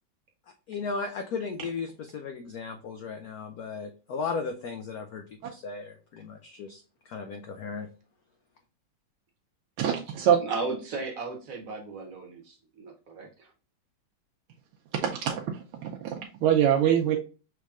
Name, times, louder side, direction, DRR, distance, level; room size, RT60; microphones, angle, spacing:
voice 1, 0.7-5.2 5.5-7.9, left 4 dB, 85° left, 5 dB, 0.8 m, -35 dB
voice 2, 9.8-10.4 15.0-15.5 15.8-17.2, right 9 dB, 85° right, 0 dB, 1.5 m, -24 dB
voice 3, 10.4-13.5, right 3 dB, 50° right, 2 dB, 1.1 m, -36 dB
6.2 x 3.3 x 2.4 m, 0.34 s
omnidirectional pair, 2.3 m